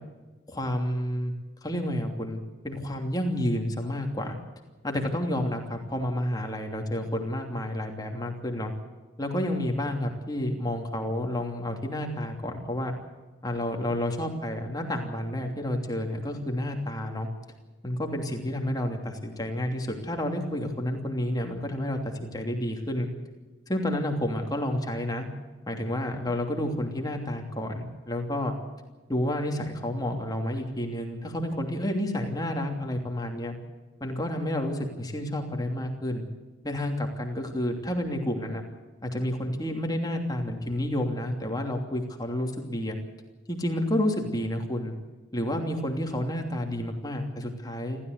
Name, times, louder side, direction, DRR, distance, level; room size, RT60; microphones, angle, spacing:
voice 1, 0.5-1.3 1.6-4.4 4.8-8.7 9.2-12.9 13.4-17.3 17.8-23.1 23.7-25.3 25.7-28.5 29.1-33.5 34.0-36.3 36.6-38.6 39.0-43.0 43.5-44.9 45.3-48.0, left 1 dB, 20° left, 3 dB, 2.9 m, -30 dB
29.0 x 13.5 x 8.2 m, 1.2 s
head